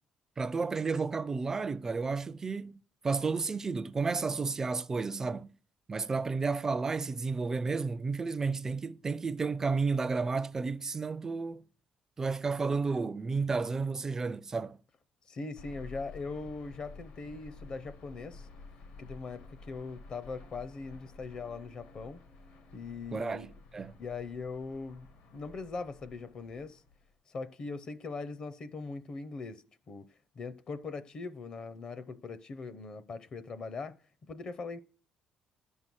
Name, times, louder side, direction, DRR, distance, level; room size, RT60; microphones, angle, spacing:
voice 1, 0.4-2.8 3.0-5.5 5.9-11.6 12.2-14.8 23.1-23.5 23.7-23.9, right 4 dB, 20° right, 0.4 m, -32 dB
voice 2, 15.3-18.5 19.0-22.2 22.7-23.5 24.0-25.1 25.3-26.8 27.3-30.1 30.4-33.9 34.3-34.8, left 4 dB, 40° left, 0.6 m, -41 dB
sound 1, 15.5-27.1, left 3 dB, 80° left, 1.7 m, -52 dB
11.0 x 5.5 x 6.2 m
cardioid pair, 140°, 2 cm